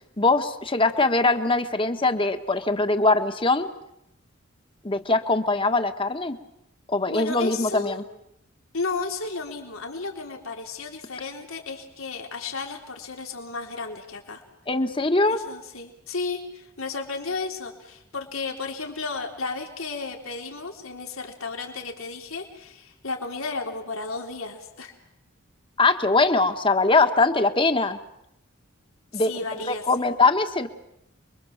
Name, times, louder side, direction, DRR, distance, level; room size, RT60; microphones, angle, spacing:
voice 1, 0.2-3.7 4.8-6.4 6.9-8.0 14.7-15.4 25.8-28.0 29.1-30.7, left 3 dB, 25° left, 8 dB, 1.6 m, -22 dB
voice 2, 7.1-8.0 8.7-14.4 15.3-24.9 29.1-30.1, left 4 dB, 85° left, 2 dB, 3.8 m, -33 dB
29.5 x 23.0 x 7.4 m, 0.79 s
head